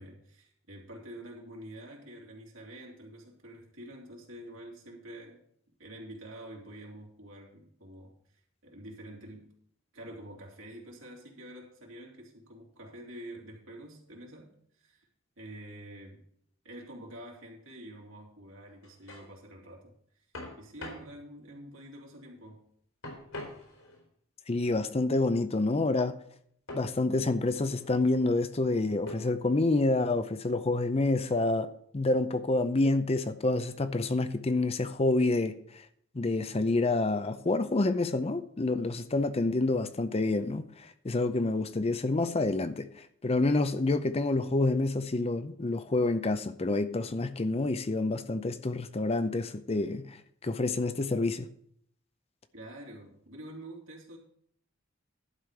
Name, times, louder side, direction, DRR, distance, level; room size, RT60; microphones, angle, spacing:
voice 1, 0.0-5.4 5.8-8.2 8.6-9.5 9.9-14.5 14.8-15.1 15.4-16.3 16.6-19.9 20.6-22.6 52.5-54.2, right 1 dB, 70° right, 3.1 m, -47 dB
sound 1, 18.7-19.3 20.3-21.1 23.0-24.0 26.7-26.9 27.7-28.1 29.1-29.5, left 1 dB, 75° left, 3.6 m, -44 dB
voice 2, 24.5-26.2 26.7-35.6 36.1-51.5, left 2 dB, 30° left, 0.6 m, -28 dB
11.5 x 5.0 x 7.2 m
head